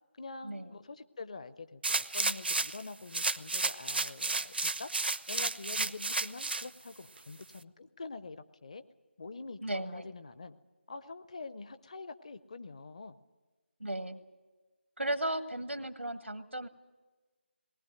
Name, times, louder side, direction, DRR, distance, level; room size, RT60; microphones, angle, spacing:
voice 1, 0.1-4.9 5.3-8.8 9.2-10.6 10.9-13.2, left 3 dB, 35° left, 13 dB, 0.6 m, -45 dB
sound 1, 1.8-2.8 3.1-6.7 7.2-7.3, right 3 dB, 55° right, 0.6 m, -32 dB
voice 2, 9.6-10.1 13.8-14.2 15.0-16.7, right 1 dB, 90° right, 10 dB, 1.3 m, -35 dB
19.5 x 18.0 x 9.1 m, 1.3 s
figure-of-eight pair, 160°, 6 cm